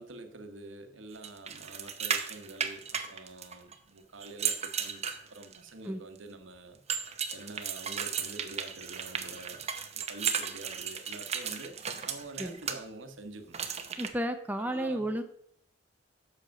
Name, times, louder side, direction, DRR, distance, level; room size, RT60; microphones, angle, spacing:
voice 1, 0.0-5.0 5.3-6.8 7.3-9.7 9.9-11.7 12.0-13.6 14.6-15.1, right 2 dB, 85° right, 7 dB, 1.2 m, -46 dB
sound 1, 1.2-3.7 4.2-5.7 6.9-12.8 13.5-14.1, right 7 dB, 35° right, 0.8 m, -35 dB
voice 2, 14.0-15.2, right 1 dB, 10° right, 6 dB, 0.6 m, -32 dB
7.9 x 6.5 x 5.8 m, 0.69 s
head